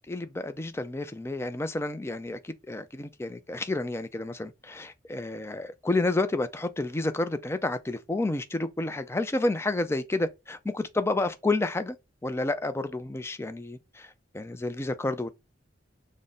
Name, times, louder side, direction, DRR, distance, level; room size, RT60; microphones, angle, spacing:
voice 1, 0.1-12.0 12.2-14.1 14.3-15.3, left 2 dB, 15° left, 0.4 m, -30 dB
3.9 x 2.1 x 3.5 m
head